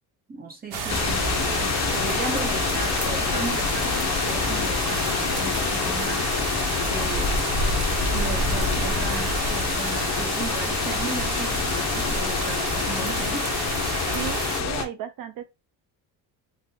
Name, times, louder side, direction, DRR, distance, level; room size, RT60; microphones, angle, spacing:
voice 1, 0.3-6.3 6.8-7.5 8.1-13.5, right 4 dB, 25° right, 0.8 m, -36 dB
sound 1, 0.7-14.6, right 5 dB, 75° right, 1.0 m, -30 dB
sound 2, 0.9-14.8, left 6 dB, 45° left, 0.6 m, -26 dB
sound 3, 11.3-13.1, left 4 dB, 5° left, 1.0 m, -46 dB
voice 2, 14.1-15.4, right 9 dB, 55° right, 0.6 m, -34 dB
3.5 x 2.2 x 2.7 m
cardioid pair, 125°, 40 cm